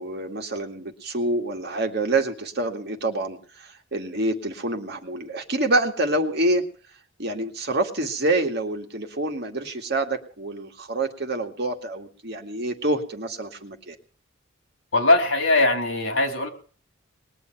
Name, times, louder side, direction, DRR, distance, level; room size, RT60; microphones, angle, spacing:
voice 1, 0.0-6.6 7.2-14.0, right 2 dB, 55° right, 4 dB, 2.1 m, -27 dB
voice 2, 14.9-16.5, left 2 dB, 70° left, 5 dB, 3.7 m, -20 dB
20.5 x 7.0 x 9.1 m, 0.43 s
head